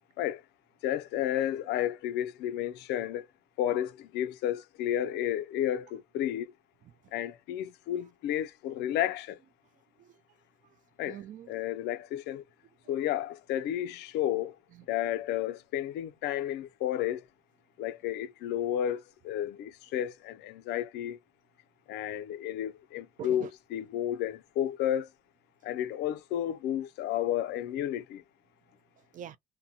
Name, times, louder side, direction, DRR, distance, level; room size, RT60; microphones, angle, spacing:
voice 1, 0.8-3.3 3.6-6.5 7.1-9.4 11.0-11.2 11.5-12.4 12.9-14.5 14.9-17.2 17.8-21.2 21.9-25.1 25.6-28.2, left 11 dB, 80° left, 0.5 m, -32 dB
voice 2, 10.6-11.5 12.8-12.9 14.7-14.8 23.2-23.5 29.0-29.4, right 10 dB, 50° right, 0.4 m, -46 dB
2.7 x 2.2 x 2.7 m
cardioid pair, 110°, 17 cm